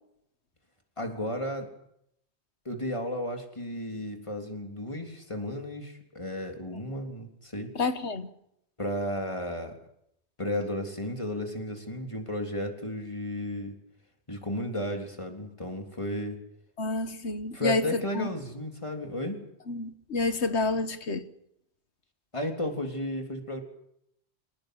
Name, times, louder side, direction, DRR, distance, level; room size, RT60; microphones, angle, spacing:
voice 1, 1.0-1.7 2.7-7.7 8.8-9.8 10.4-13.7 14.3-16.4 17.5-19.4 22.3-23.6, left 1 dB, 30° left, 3 dB, 3.7 m, -33 dB
voice 2, 7.8-8.3 16.8-18.3 19.7-21.3, left 3 dB, 80° left, 10 dB, 1.8 m, -29 dB
26.0 x 19.0 x 7.9 m, 0.77 s
omnidirectional pair, 1.1 m